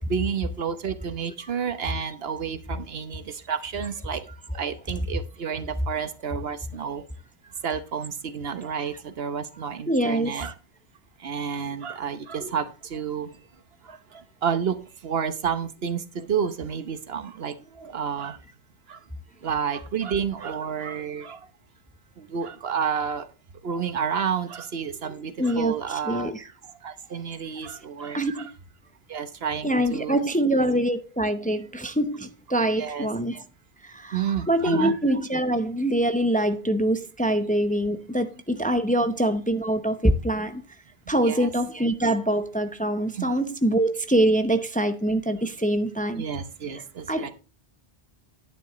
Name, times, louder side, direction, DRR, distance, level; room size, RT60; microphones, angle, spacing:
voice 1, 0.1-4.2 4.5-7.0 7.6-10.5 11.2-13.3 13.8-18.4 18.9-19.0 19.4-21.5 22.2-23.3 23.6-26.3 26.6-28.5 29.1-30.2 32.8-33.1 34.1-34.9 41.2-41.5 43.1-43.3 46.2-47.3, right 7 dB, 75° right, 1.2 m, -30 dB
voice 2, 9.9-10.4 25.4-26.4 28.1-28.5 29.6-33.4 33.8-40.6 41.1-46.2 46.7-46.8 47.1-47.3, right 1 dB, 10° left, 0.7 m, -24 dB
11.0 x 9.4 x 3.1 m
omnidirectional pair, 1.0 m